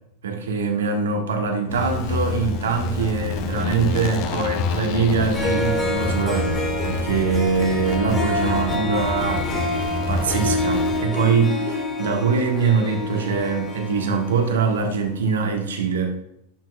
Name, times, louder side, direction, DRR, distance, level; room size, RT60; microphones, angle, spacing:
voice 1, 0.2-9.7 10.1-16.2, right 5 dB, 75° right, 2 dB, 1.6 m, -23 dB
sound 1, 1.7-11.0, left 3 dB, 50° left, 1.0 m, -28 dB
Harp, 5.0-5.1 5.3-14.8, left 2 dB, 25° left, 2.2 m, -27 dB
12.0 x 6.1 x 2.4 m, 0.76 s
figure-of-eight pair, 90°, 0 cm